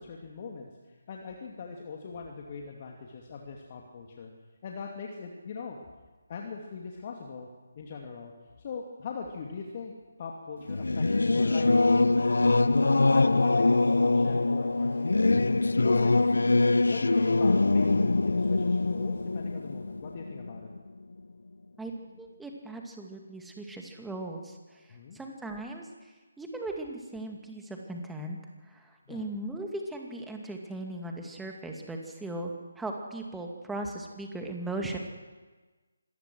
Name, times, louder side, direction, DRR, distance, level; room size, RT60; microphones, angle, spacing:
voice 1, 0.0-4.3 4.6-5.8 6.3-7.5 7.7-8.3 8.6-9.9 10.2-11.7 12.4-15.4 15.8-16.2 16.9-20.7 24.9-25.2 29.1-29.2, left 5 dB, 35° left, 0 dB, 2.5 m, -41 dB
Singing / Musical instrument, 10.7-20.8, left 3 dB, 70° left, 0.8 m, -23 dB
voice 2, 22.2-24.9 25.1-28.4 28.7-35.0, right 2 dB, 5° right, 1 dB, 2.3 m, -38 dB
26.0 x 18.5 x 6.3 m, 1.3 s
figure-of-eight pair, 150°, 0 cm